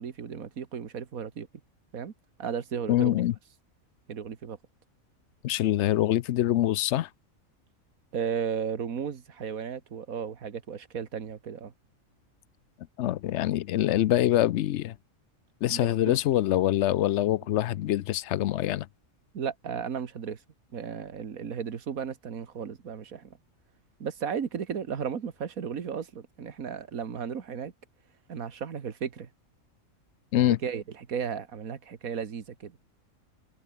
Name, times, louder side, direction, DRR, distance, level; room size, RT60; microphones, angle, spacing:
voice 1, 0.0-1.5 1.9-2.1 2.4-3.2 4.1-4.6 8.1-11.7 15.7-16.2 19.3-20.4 20.7-23.4 24.0-27.7 28.3-29.3 30.4-32.8, right 7 dB, 80° right, 2.0 m, -34 dB
voice 2, 2.9-3.3 5.4-7.1 13.0-15.0 15.6-18.9 30.3-30.6, left 13 dB, 65° left, 0.8 m, -25 dB
omnidirectional pair, 1.4 m